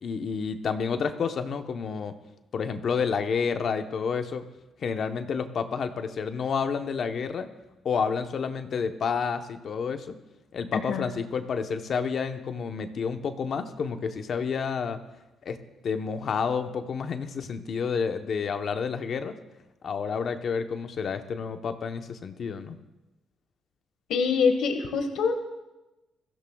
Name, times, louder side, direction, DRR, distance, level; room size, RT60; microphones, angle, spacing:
voice 1, 0.0-2.1 2.5-4.5 4.8-7.5 7.8-10.1 10.5-15.0 15.4-15.6 15.8-19.4 19.8-22.8, left 6 dB, 55° left, 7 dB, 0.9 m, -29 dB
voice 2, 10.7-11.1 24.1-25.3, left 5 dB, 80° left, 5 dB, 1.4 m, -25 dB
21.5 x 15.5 x 2.3 m, 1.0 s
cardioid pair, 90°, 0 cm